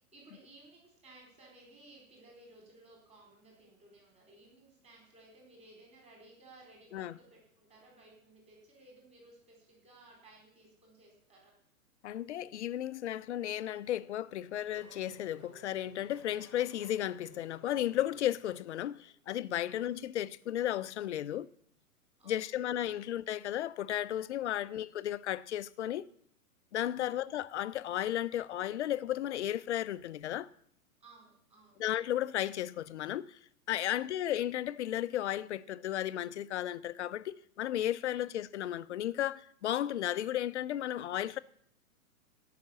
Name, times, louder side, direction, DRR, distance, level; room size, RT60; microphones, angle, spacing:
voice 1, 0.1-11.5 19.7-19.9 22.2-22.6 23.0-23.1 24.6-24.8 27.0-27.2 31.0-31.8 33.9-34.3 38.1-38.3, right 2 dB, 15° right, 4.0 m, -58 dB
voice 2, 12.0-21.5 22.3-26.0 26.7-30.5 31.8-33.4 33.7-41.4, left 12 dB, 50° left, 0.6 m, -34 dB
Race car auto racing / Accelerating revving vroom, 13.5-19.1, right 3 dB, 80° right, 2.1 m, -58 dB
17.0 x 5.9 x 6.9 m
figure-of-eight pair, 120°, 45 cm